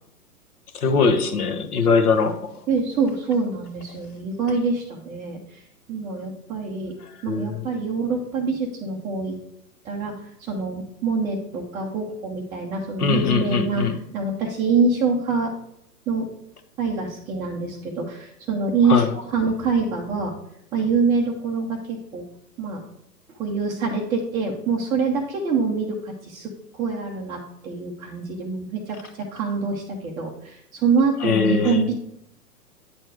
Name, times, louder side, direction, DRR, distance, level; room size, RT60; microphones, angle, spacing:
voice 1, 0.8-2.5 7.3-7.6 13.0-14.0 18.9-19.1 31.2-31.8, left 4 dB, 65° left, 8 dB, 1.2 m, -21 dB
voice 2, 2.7-5.6 5.9-6.9 7.2-9.3 9.8-15.5 16.1-16.3 16.8-20.3 20.7-22.2 22.6-22.8 23.4-31.9, right 4 dB, 10° right, -5 dB, 0.5 m, -25 dB
9.1 x 4.4 x 4.7 m, 0.74 s
figure-of-eight pair, 115°, 48 cm